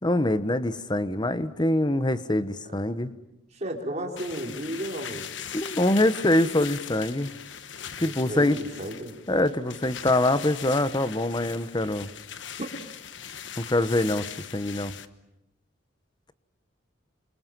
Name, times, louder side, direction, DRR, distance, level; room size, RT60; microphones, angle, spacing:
voice 1, 0.0-3.1 5.5-7.3 8.0-8.6 9.3-12.1 13.6-14.3 14.5-14.9, left 1 dB, 25° left, 12 dB, 1.2 m, -24 dB
voice 2, 3.5-5.3 8.0-9.1 12.6-12.7, right 1 dB, 35° right, 1 dB, 4.5 m, -34 dB
sound 1, 4.2-15.1, left 8 dB, 70° left, 1.2 m, -40 dB
29.5 x 26.5 x 7.6 m, 0.89 s
head